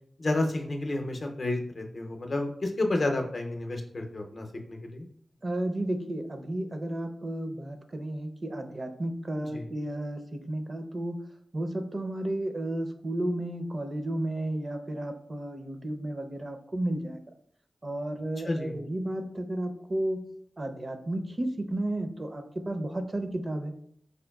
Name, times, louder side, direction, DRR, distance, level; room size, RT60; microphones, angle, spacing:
voice 1, 0.2-5.1 9.4-9.7 18.5-18.8, left 2 dB, 60° left, 3 dB, 0.6 m, -31 dB
voice 2, 5.4-11.2 11.5-17.2 17.8-20.3 20.6-23.7, right 1 dB, 45° right, 6 dB, 0.5 m, -33 dB
4.8 x 2.2 x 2.3 m, 0.65 s
cardioid pair, 50°, 0 cm